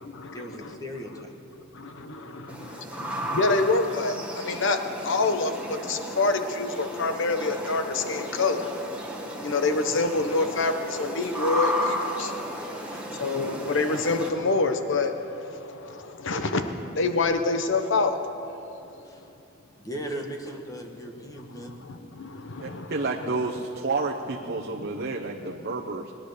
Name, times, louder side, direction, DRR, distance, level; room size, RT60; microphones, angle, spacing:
voice 1, 0.3-1.4 5.1-5.2 12.5-13.2 19.0-19.3 19.8-21.8, equal, 15° left, 3 dB, 1.4 m, -38 dB
sound 1, 2.5-14.3, equal, 5° right, 1.7 m, -34 dB
voice 2, 3.3-4.1 4.4-4.8 5.0-5.5 5.9-8.6 9.4-12.3 13.2-15.1 16.2-16.6 17.0-18.1 22.2-22.3 22.5-22.9, left 3 dB, 65° left, 7 dB, 1.0 m, -25 dB
voice 3, 22.6-26.1, right 3 dB, 55° right, 0 dB, 0.9 m, -30 dB
20.5 x 10.0 x 6.7 m, 2.8 s
head